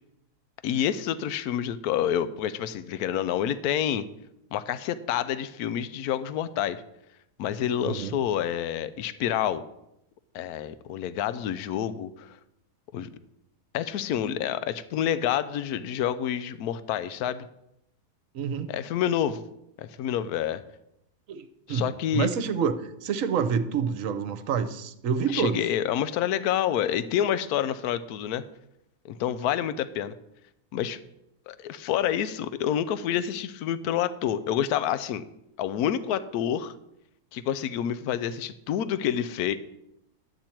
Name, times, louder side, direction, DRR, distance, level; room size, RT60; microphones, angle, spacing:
voice 1, 0.6-4.1 4.5-6.8 7.4-9.6 10.3-12.3 12.9-13.1 13.7-17.4 18.7-19.4 19.8-20.6 21.7-22.3 25.3-28.4 29.0-30.1 30.7-31.0 31.5-35.2 35.6-36.7 37.3-39.6, left 10 dB, 75° left, 14 dB, 1.1 m, -28 dB
voice 2, 18.3-18.7 21.3-22.7 23.0-25.6, right 7 dB, 65° right, 10 dB, 1.1 m, -28 dB
12.0 x 8.7 x 4.4 m, 0.82 s
omnidirectional pair, 1.6 m